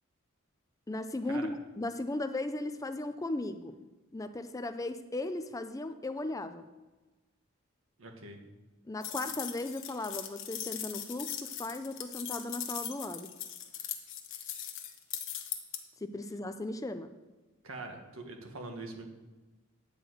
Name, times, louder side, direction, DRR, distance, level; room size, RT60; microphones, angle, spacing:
voice 1, 0.9-3.8 4.1-6.7 8.9-13.3 16.0-17.1, left 2 dB, 15° left, 10 dB, 0.4 m, -36 dB
voice 2, 8.0-8.4 17.6-19.0, right 2 dB, 75° right, 3 dB, 1.6 m, -43 dB
sound 1, 9.0-15.8, left 10 dB, 60° left, 1.1 m, -40 dB
10.0 x 4.8 x 7.8 m, 1.2 s
head